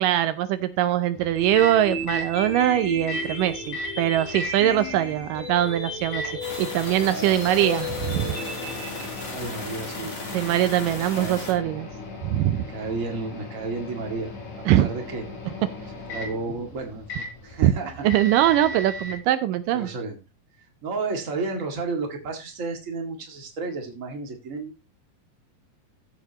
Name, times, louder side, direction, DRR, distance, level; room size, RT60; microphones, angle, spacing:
voice 1, 0.0-6.3 6.6-8.4 10.3-11.9 12.2-12.7 14.7-14.9 17.6-17.7 18.0-19.9, right 12 dB, 80° right, 12 dB, 2.2 m, -22 dB
Microwave oven, 1.2-19.2, left 1 dB, 65° left, 4.9 m, -38 dB
sound 1, 1.4-9.4, left 2 dB, 85° left, 6.5 m, -34 dB
sound 2, 6.4-11.5, left 2 dB, 45° left, 4.3 m, -36 dB
voice 2, 9.2-10.1 11.1-11.3 11.6-11.7 12.5-14.3 14.7-15.2 16.1-18.0 19.7-20.2 20.8-24.8, right 3 dB, 25° right, 2 dB, 2.0 m, -32 dB
15.0 x 8.0 x 2.9 m, 0.26 s
omnidirectional pair, 3.9 m